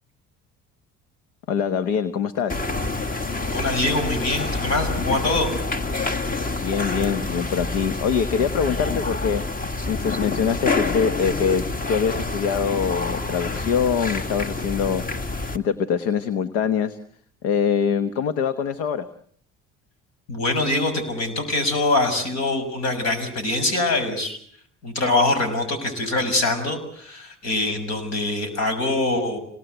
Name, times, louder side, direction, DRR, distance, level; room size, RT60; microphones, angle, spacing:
voice 1, 1.5-2.7 6.6-9.4 9.9-17.0 17.4-19.1, left 7 dB, 85° left, 12 dB, 1.2 m, -24 dB
sound 1, 2.5-15.6, left 3 dB, 30° left, 1.9 m, -27 dB
voice 2, 3.5-5.5 20.3-24.4 24.8-29.4, left 2 dB, 65° left, 7 dB, 6.8 m, -24 dB
26.5 x 19.0 x 8.0 m, 0.62 s
supercardioid pair, 80°, 29 cm